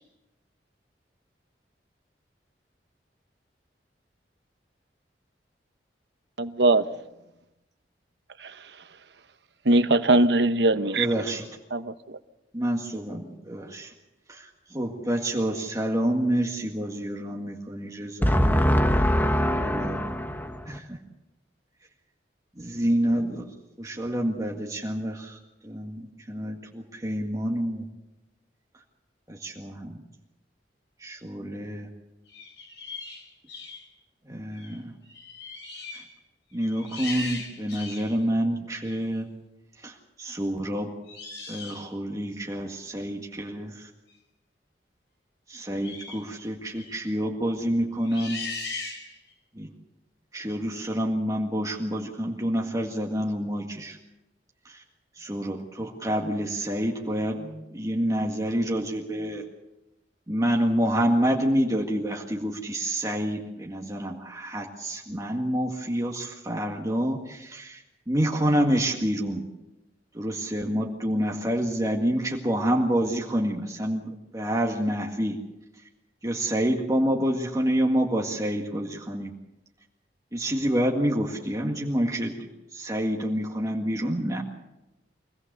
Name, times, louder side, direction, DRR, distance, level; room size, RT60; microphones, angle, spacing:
voice 1, 6.4-6.8 8.4-8.5 9.6-11.1 11.7-12.2, right 2 dB, 75° right, 10 dB, 1.1 m, -21 dB
voice 2, 11.0-11.4 12.5-13.9 14.3-18.3 19.6-20.0 20.7-21.0 22.6-23.5 23.8-25.4 25.6-27.9 29.3-30.0 31.0-31.9 34.3-34.9 35.9-36.0 36.5-39.3 39.8-40.9 41.5-43.9 45.5-48.4 49.6-49.7 50.3-54.0 54.7-54.8 55.2-59.4 60.3-69.5 70.1-75.4 76.2-79.3 80.3-82.3 82.7-84.4, equal, 20° right, -1 dB, 1.9 m, -28 dB
voice 3, 18.2-20.8, equal, 10° left, 6 dB, 1.5 m, -23 dB
sound 1, 32.3-33.9 34.5-34.8 35.0-36.1 36.5-38.2 38.9-39.0 41.1-41.9 45.8-46.3 46.7-47.0 48.0-49.3, left 3 dB, 85° left, 5.2 m, -39 dB
25.0 x 18.0 x 6.8 m, 0.95 s
head